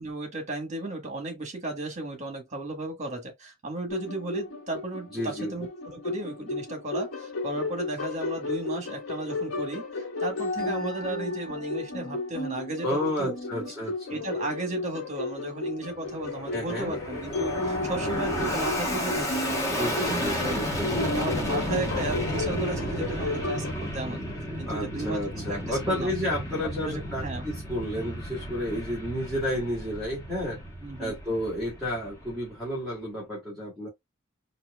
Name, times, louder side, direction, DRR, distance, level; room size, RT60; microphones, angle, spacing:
voice 1, 0.0-13.7 14.1-20.6 21.1-24.2 24.6-26.1 26.6-27.5 30.8-31.2, right 2 dB, 35° right, 1.4 m, -35 dB
sound 1, 3.9-23.7, left 2 dB, 80° left, 1.5 m, -33 dB
voice 2, 5.1-5.5 12.8-14.1 16.5-17.0 19.7-21.1 24.7-30.6 31.0-33.9, left 1 dB, ahead, 1.7 m, -31 dB
Fixed-wing aircraft airplane, 16.0-32.7, equal, 15° left, 1.3 m, -33 dB
4.3 x 2.6 x 2.3 m
head